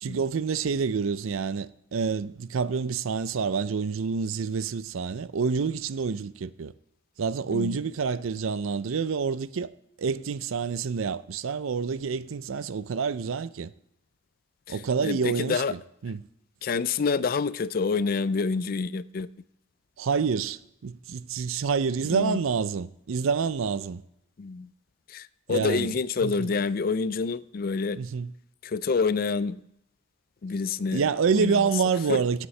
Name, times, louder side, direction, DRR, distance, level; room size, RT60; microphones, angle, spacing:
voice 1, 0.0-6.7 7.2-9.7 10.0-13.7 14.7-16.2 20.0-24.0 25.5-25.9 26.2-26.5 28.0-28.3 30.9-32.5, right 5 dB, 80° right, 0.5 m, -28 dB
voice 2, 14.7-15.8 16.6-19.3 22.1-22.4 24.4-24.7 25.1-28.0 28.6-29.6 30.4-31.0 31.3-31.7 32.1-32.2, left 4 dB, 45° left, 0.4 m, -27 dB
17.0 x 8.1 x 3.3 m
head